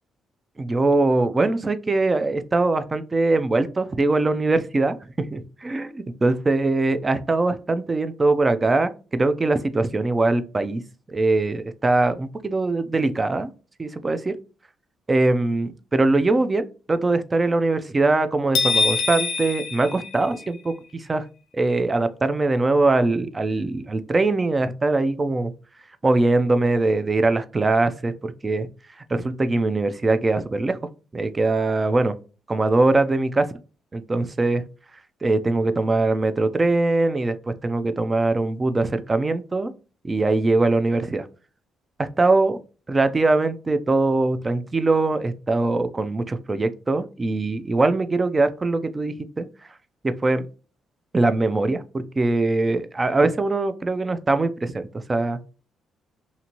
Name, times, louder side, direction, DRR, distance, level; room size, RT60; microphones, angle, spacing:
voice 1, 0.6-10.8 11.1-13.5 13.8-14.3 15.1-21.3 21.5-25.5 26.0-28.7 29.1-30.8 31.1-32.1 32.5-33.5 33.9-34.6 35.2-39.7 40.0-41.3 42.0-42.6 42.9-49.5 50.0-50.5 51.1-55.4, right 2 dB, 25° right, 11 dB, 0.3 m, -22 dB
sound 1, 18.5-20.7, left 4 dB, 85° left, 0.5 m, -24 dB
2.7 x 2.5 x 2.8 m, 0.35 s
cardioid pair, 90°, 0 cm